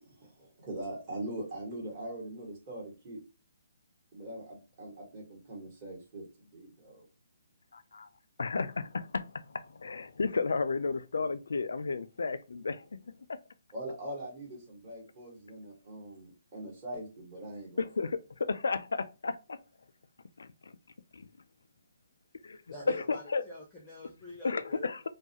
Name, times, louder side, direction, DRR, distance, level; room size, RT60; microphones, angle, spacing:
voice 1, 0.0-3.2 4.1-7.0 13.7-17.8, right 1 dB, 25° right, 1.1 m, -42 dB
voice 2, 7.7-8.1 8.4-13.1 17.8-19.6 20.4-20.7 21.1-21.3 22.4-22.6 22.9-23.4 24.4-25.0, left 4 dB, 80° left, 0.3 m, -33 dB
voice 3, 22.7-24.9, left 1 dB, 5° left, 0.5 m, -46 dB
2.3 x 2.1 x 2.8 m
hypercardioid pair, 165°, 0 cm